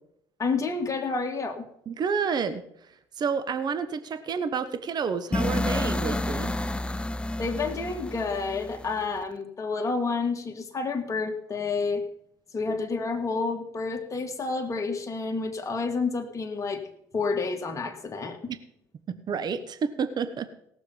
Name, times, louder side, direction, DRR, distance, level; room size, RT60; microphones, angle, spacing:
voice 1, 0.4-1.7 7.4-12.0 12.5-18.4, left 4 dB, 30° left, 3 dB, 2.2 m, -29 dB
voice 2, 1.9-2.6 3.2-6.5 19.1-20.5, right 6 dB, 45° right, 11 dB, 1.1 m, -29 dB
sound 1, 5.3-9.2, left 2 dB, 10° left, 0.6 m, -30 dB
17.5 x 6.9 x 5.6 m, 0.75 s
hypercardioid pair, 65°, 10 cm